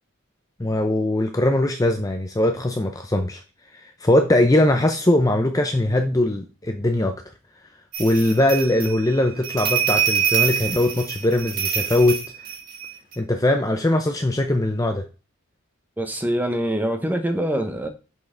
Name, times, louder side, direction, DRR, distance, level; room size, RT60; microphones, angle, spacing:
voice 1, 0.6-3.4 4.0-7.2 8.0-12.2 13.2-15.0, left 1 dB, 15° left, 0.5 m, -20 dB
sound 1, 7.9-13.1, right 8 dB, 45° right, 1.7 m, -25 dB
voice 2, 16.0-17.9, right 1 dB, 10° right, 0.9 m, -24 dB
6.3 x 5.6 x 3.8 m
head